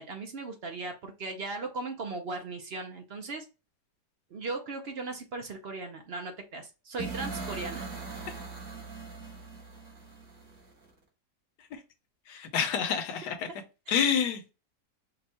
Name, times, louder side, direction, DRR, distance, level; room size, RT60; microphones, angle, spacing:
voice 1, 0.0-3.4 4.3-7.9 13.9-14.0, right 3 dB, 60° right, 0.6 m, -37 dB
sound 1, 7.0-10.9, right 4 dB, 45° right, 1.7 m, -40 dB
voice 2, 12.3-13.5 13.9-14.5, left 7 dB, 70° left, 1.4 m, -28 dB
5.3 x 2.3 x 4.2 m
omnidirectional pair, 1.9 m